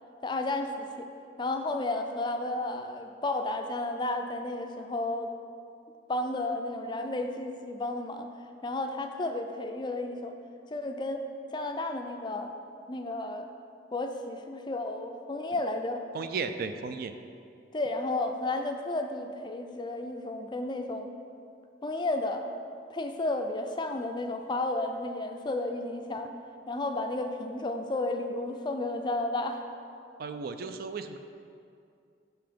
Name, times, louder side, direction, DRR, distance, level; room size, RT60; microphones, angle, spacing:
voice 1, 0.2-1.1 1.4-5.3 6.1-8.3 8.6-10.3 10.7-11.2 11.5-12.6 12.9-13.5 13.9-16.0 17.7-21.1 21.8-22.5 22.9-26.3 26.7-29.6, left 2 dB, 25° left, 6 dB, 0.4 m, -32 dB
voice 2, 16.1-17.1 30.2-31.2, right 5 dB, 55° right, 8 dB, 0.3 m, -34 dB
5.8 x 5.6 x 5.0 m, 2.4 s
head